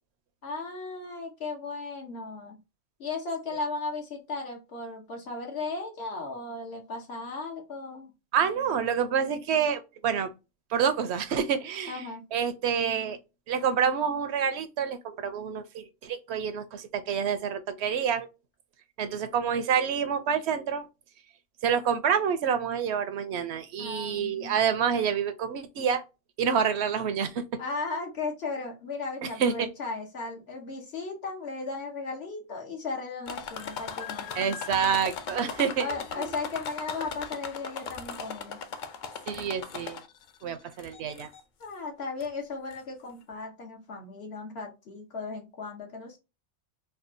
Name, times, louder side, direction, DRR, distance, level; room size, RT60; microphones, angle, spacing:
voice 1, 0.4-2.6 3.0-8.1 11.9-12.2 23.8-24.6 27.6-34.3 35.8-38.6 41.6-46.2, left 3 dB, 75° left, 1.2 m, -36 dB
voice 2, 8.3-10.3 10.7-12.0 12.3-13.2 13.5-18.3 19.0-20.9 21.6-26.0 26.4-27.4 29.2-29.7 34.3-36.3 39.3-40.0 40.4-41.3, right 7 dB, 85° right, 0.9 m, -28 dB
sound 1, 33.3-40.3 40.8-41.4 42.2-42.3 42.7-42.8, left 6 dB, 55° left, 0.6 m, -38 dB
4.6 x 2.3 x 2.5 m
omnidirectional pair, 1.1 m